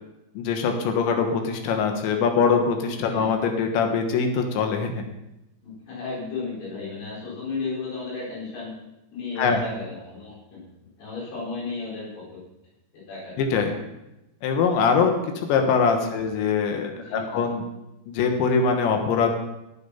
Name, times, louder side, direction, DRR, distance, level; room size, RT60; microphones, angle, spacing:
voice 1, 0.4-5.0 9.4-9.6 13.4-13.8 14.4-15.1 15.4-17.6 18.1-19.4, left 5 dB, 85° left, 4 dB, 3.5 m, -23 dB
voice 2, 5.6-8.8 9.1-10.6 11.0-12.4 13.1-13.4 16.0-16.3 16.9-17.4, left 4 dB, 65° left, -6 dB, 6.4 m, -34 dB
14.0 x 8.5 x 5.7 m, 0.94 s
omnidirectional pair, 5.1 m